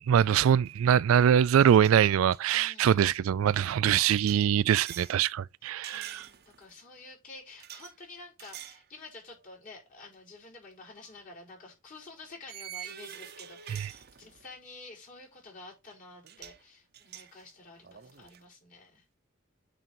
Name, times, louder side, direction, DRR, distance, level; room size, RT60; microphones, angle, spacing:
voice 1, 0.0-6.3 13.7-13.9, right 9 dB, 80° right, 0.3 m, -23 dB
sound 1, 0.6-2.8 4.2-5.2 5.8-6.7 7.6-7.9 8.4-8.8 9.3-9.5 11.0-11.1 12.5-14.5 15.9-16.0 16.2-16.6 16.9-18.4, right 10 dB, 50° right, 0.8 m, -46 dB
voice 2, 2.5-3.5 5.9-19.0, left 3 dB, 45° left, 4.7 m, -50 dB
9.0 x 3.9 x 4.4 m
head